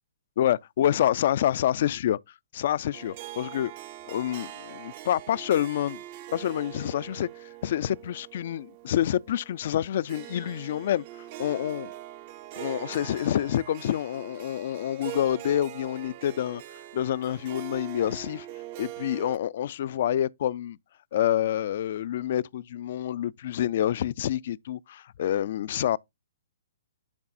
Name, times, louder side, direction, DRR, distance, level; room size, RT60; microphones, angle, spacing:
voice 1, 0.4-2.2 2.5-3.7 4.1-6.0 6.3-7.3 7.6-11.0 11.4-11.9 12.6-16.6 16.9-18.5 18.8-20.8 21.1-26.0, left 11 dB, 55° left, 0.3 m, -27 dB
Harp, 2.9-19.4, right 14 dB, 40° right, 0.5 m, -43 dB
10.5 x 4.0 x 2.5 m
hypercardioid pair, 130°, 0 cm